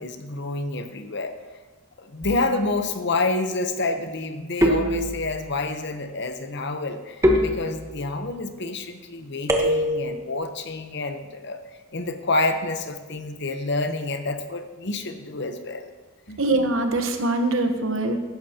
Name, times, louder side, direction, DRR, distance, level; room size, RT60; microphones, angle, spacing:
voice 1, 0.0-1.4 2.0-11.6 11.9-15.9 16.3-16.4, left 2 dB, 60° left, 7 dB, 0.9 m, -28 dB
sound 1, 2.2-2.8 4.6-5.5 7.2-8.2 9.5-10.2, equal, 15° right, 1.2 m, -23 dB
voice 2, 16.4-18.2, right 2 dB, 80° right, 6 dB, 1.2 m, -23 dB
15.5 x 12.0 x 2.9 m, 1.3 s
head